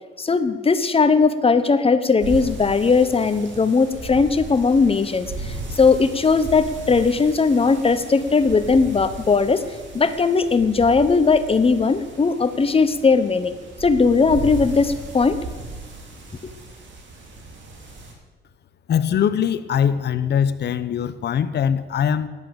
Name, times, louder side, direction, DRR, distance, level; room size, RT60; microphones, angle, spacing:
voice 1, 0.2-9.6 9.9-13.5 13.8-15.4, left 4 dB, 30° left, 12 dB, 0.9 m, -18 dB
sound 1, 2.2-18.1, right 2 dB, 65° right, 3.2 m, -36 dB
voice 2, 18.9-22.3, left 8 dB, 55° left, 13 dB, 0.9 m, -22 dB
14.0 x 11.0 x 7.1 m, 1.3 s
cardioid pair, 90°, 20 cm